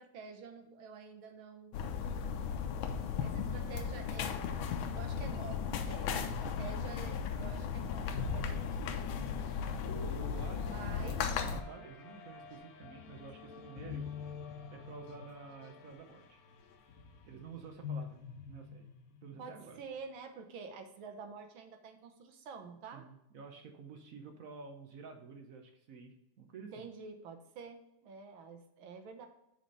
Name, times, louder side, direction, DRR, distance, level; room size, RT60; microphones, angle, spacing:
voice 1, 0.0-1.8 3.2-4.4 4.9-8.8 10.6-11.3 19.4-23.0 26.7-29.3, right 5 dB, 85° right, 6 dB, 1.7 m, -48 dB
sound 1, 1.7-11.6, left 6 dB, 85° left, 1.5 m, -36 dB
sound 2, 8.1-19.8, left 5 dB, 65° left, 1.0 m, -46 dB
voice 2, 10.0-14.1 14.7-16.4 17.3-18.2 18.5-18.9 19.2-19.8 22.9-26.9, right 5 dB, 65° right, 4 dB, 0.9 m, -50 dB
6.2 x 4.2 x 5.3 m, 0.83 s
omnidirectional pair, 2.2 m